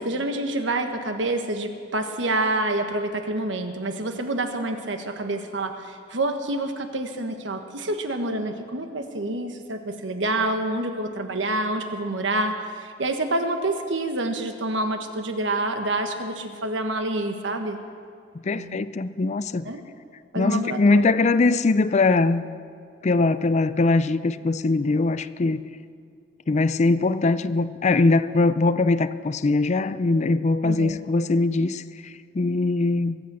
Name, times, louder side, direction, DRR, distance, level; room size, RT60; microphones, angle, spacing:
voice 1, 0.0-17.8 18.5-18.8 19.6-19.8 20.3-21.1 30.6-31.0, right 2 dB, 80° right, 1.4 m, -27 dB
voice 2, 18.4-19.7 20.4-22.4 23.0-25.6 26.5-33.2, left 3 dB, 40° left, 0.4 m, -21 dB
22.5 x 8.2 x 7.5 m
head